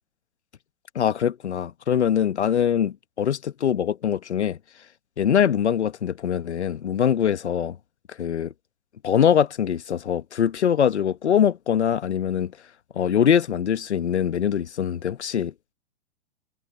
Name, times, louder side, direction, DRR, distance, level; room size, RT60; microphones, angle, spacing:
voice 1, 0.9-4.6 5.2-7.8 8.2-8.5 9.0-12.5 12.9-15.5, left 8 dB, 70° left, 1.4 m, -23 dB
figure-of-eight pair, 115°, 35 cm